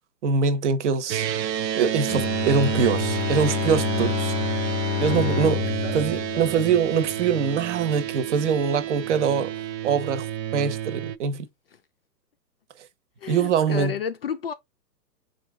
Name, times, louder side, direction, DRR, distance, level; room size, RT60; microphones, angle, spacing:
voice 1, 0.2-1.3 1.7-4.3 5.0-5.6 5.9-9.6 9.8-10.3 10.5-11.4 13.3-13.9, right 6 dB, 45° right, 1.0 m, -23 dB
sound 1, 1.1-11.2, right 10 dB, 85° right, 0.7 m, -29 dB
Bowed string instrument, 2.1-7.3, left 16 dB, 80° left, 0.6 m, -29 dB
voice 2, 5.0-5.5 5.8-6.0 11.7-11.8 13.2-14.5, left 8 dB, 40° left, 0.5 m, -32 dB
4.4 x 2.4 x 3.5 m
hypercardioid pair, 135°, 49 cm